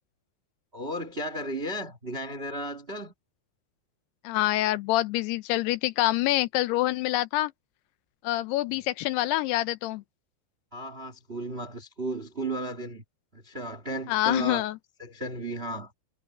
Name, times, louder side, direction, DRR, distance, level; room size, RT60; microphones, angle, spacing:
voice 1, 0.7-3.1 10.7-13.0 13.3-14.6 15.0-15.9, right 1 dB, 30° right, 1.0 m, -34 dB
voice 2, 4.2-7.5 8.2-10.0 14.1-14.7, left 16 dB, 80° left, 2.5 m, -26 dB
omnidirectional pair, 4.9 m